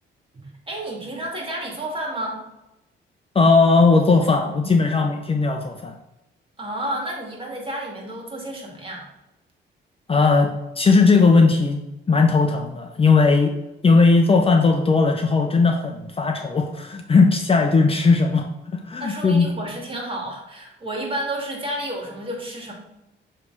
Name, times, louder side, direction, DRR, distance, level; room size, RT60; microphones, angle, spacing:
voice 1, 0.4-2.4 6.6-9.0 19.0-22.7, right 1 dB, 25° right, -1 dB, 2.2 m, -31 dB
voice 2, 3.3-6.0 10.1-11.8 12.1-13.5 13.8-19.5, left 4 dB, 30° left, 3 dB, 0.6 m, -18 dB
6.8 x 3.3 x 4.7 m, 0.93 s
cardioid pair, 90°, 20 cm